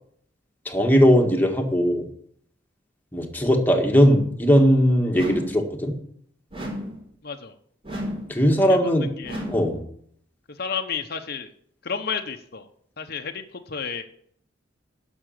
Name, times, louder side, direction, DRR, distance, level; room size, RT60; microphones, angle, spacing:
voice 1, 0.7-2.1 3.1-6.0 8.3-9.1 9.5-9.8, equal, 10° left, 2 dB, 1.7 m, -19 dB
sound 1, 5.1-5.7 6.5-7.1 7.8-8.4 9.2-9.8, equal, 30° right, 4.3 m, -33 dB
voice 2, 7.2-7.5 8.7-9.4 10.5-11.5 11.8-12.7 13.0-14.0, left 6 dB, 55° left, 5 dB, 0.9 m, -32 dB
11.5 x 6.2 x 7.8 m, 0.65 s
head